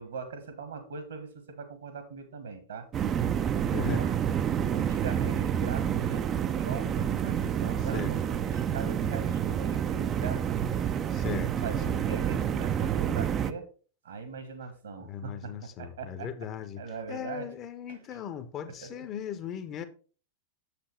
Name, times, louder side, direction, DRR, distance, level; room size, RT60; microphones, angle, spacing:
voice 1, 0.0-2.9 3.7-4.2 4.7-10.4 11.6-13.7 14.0-16.3 16.8-17.5 17.9-18.0 18.7-19.1, right 5 dB, 65° right, 1.5 m, -41 dB
sound 1, 2.9-13.5, right 9 dB, 30° right, 0.4 m, -28 dB
voice 2, 11.1-12.2 15.0-16.8 17.1-19.8, left 8 dB, 30° left, 0.8 m, -38 dB
7.3 x 6.8 x 3.2 m
figure-of-eight pair, 90°, 0 cm